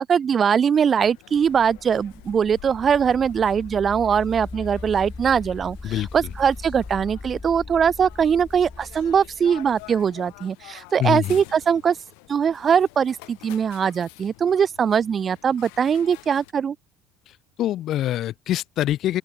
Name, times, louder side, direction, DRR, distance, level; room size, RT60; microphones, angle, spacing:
voice 1, 0.1-12.0 12.3-16.8, right 7 dB, 35° right, 2.6 m, -21 dB
sound 1, 0.8-16.5, left 40 dB or more, 85° left, 5.3 m, -48 dB
sound 2, 1.3-10.1, left 3 dB, 15° left, 3.2 m, -39 dB
voice 2, 11.0-11.4 17.3-19.2, left 13 dB, 55° left, 2.8 m, -25 dB
open air
cardioid pair, 115°, 0 cm